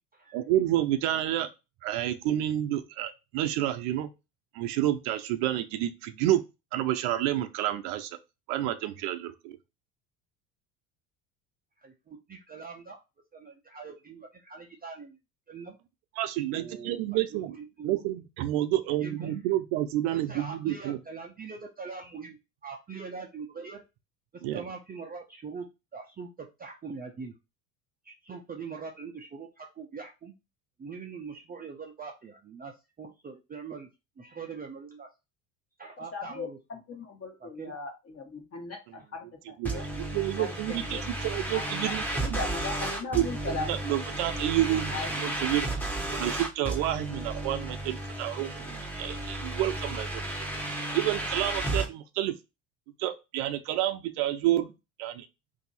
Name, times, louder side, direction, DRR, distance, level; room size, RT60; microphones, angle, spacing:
voice 1, 0.3-1.5 1.8-4.1 4.5-6.4 6.7-8.2 8.5-9.6 16.2-17.5 17.8-21.0 24.4-24.6 39.6-42.0 42.3-42.4 43.1-45.7 46.1-48.5 49.0-50.5 50.9-52.3 53.0-54.7 55.0-55.3, right 13 dB, 65° right, 0.7 m, -29 dB
voice 2, 11.8-13.0 13.3-15.2 15.5-15.8 16.5-17.0 17.3-17.9 19.0-19.3 20.1-22.4 22.6-23.8 24.3-25.7 25.9-27.3 28.0-30.3 30.8-32.7 33.0-33.9 34.2-35.1 35.8-36.6 37.4-37.7 48.6-48.9, right 5 dB, 20° right, 0.5 m, -42 dB
voice 3, 36.1-39.9 40.4-41.1 41.5-41.6 42.1-43.8 44.9-45.1, left 3 dB, 30° left, 1.2 m, -38 dB
sound 1, 39.6-51.9, right 2 dB, 5° left, 0.9 m, -33 dB
2.7 x 2.6 x 4.0 m
hypercardioid pair, 75°, 47 cm